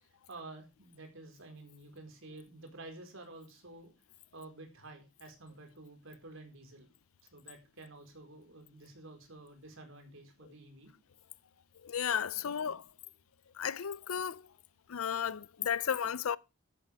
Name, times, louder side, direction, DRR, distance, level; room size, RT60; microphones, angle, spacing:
voice 1, 0.0-3.9 4.3-6.9 7.3-10.9 12.3-12.8, right 2 dB, 65° right, 4.7 m, -51 dB
voice 2, 11.8-12.8 13.6-14.5 14.9-16.4, left 8 dB, 85° left, 0.6 m, -34 dB
13.5 x 11.0 x 3.5 m
head